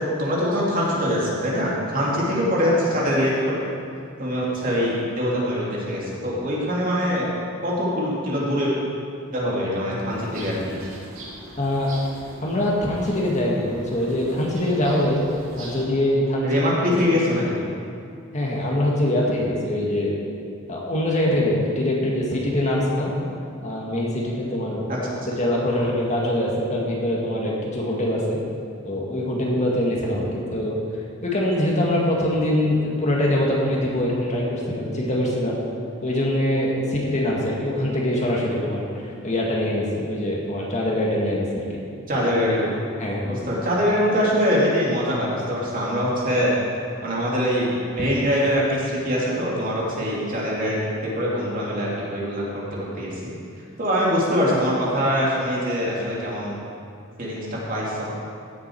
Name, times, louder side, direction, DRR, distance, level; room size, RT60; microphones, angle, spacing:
voice 1, 0.0-3.6 4.2-7.3 7.6-8.7 9.3-10.7 16.4-17.6 24.9-25.1 42.1-42.8 43.2-46.5 47.0-50.8 51.2-53.3 53.8-56.5 57.2-58.2, equal, 45° right, -5 dB, 2.8 m, -23 dB
sound 1, 10.1-15.8, right 1 dB, 80° right, 2.7 m, -42 dB
voice 2, 11.6-11.9 12.4-15.2 15.6-17.5 18.3-20.1 20.7-23.1 23.6-24.9 25.3-28.4 28.8-30.8 31.2-35.6 36.0-41.6 43.0-43.4, left 1 dB, 35° left, -3 dB, 1.9 m, -23 dB
16.0 x 7.4 x 4.6 m, 2.4 s
head